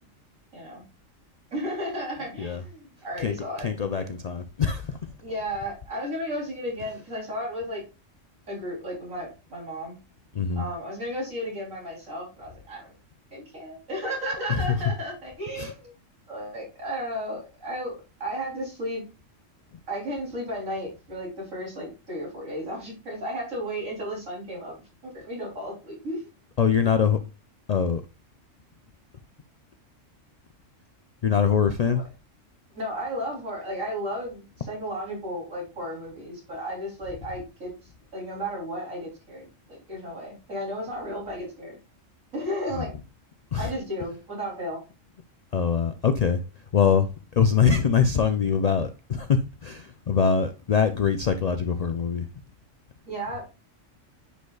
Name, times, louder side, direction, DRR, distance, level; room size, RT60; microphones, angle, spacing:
voice 1, 0.5-0.8 1.5-4.1 5.2-7.8 8.5-9.9 10.6-12.9 13.3-15.9 16.3-19.0 19.9-24.8 25.0-26.3 31.9-32.0 32.7-37.7 38.1-41.8 42.3-42.9 43.6-44.8 53.1-53.5, equal, 85° right, 3.7 m, -34 dB
voice 2, 3.6-5.0 10.4-10.6 15.6-15.7 26.6-27.2 27.7-28.0 31.2-32.0 43.5-43.7 45.5-46.4 46.7-47.1 47.4-52.2, left 6 dB, 85° left, 0.3 m, -23 dB
9.8 x 5.3 x 2.3 m
omnidirectional pair, 1.3 m